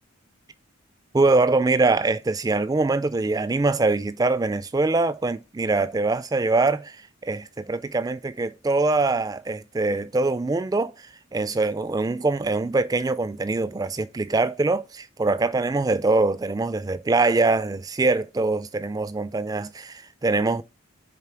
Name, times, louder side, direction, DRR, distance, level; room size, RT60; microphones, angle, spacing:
voice 1, 1.1-7.0 7.2-10.9 11.3-20.6, right 3 dB, 15° right, 0.3 m, -23 dB
6.7 x 4.1 x 4.5 m
head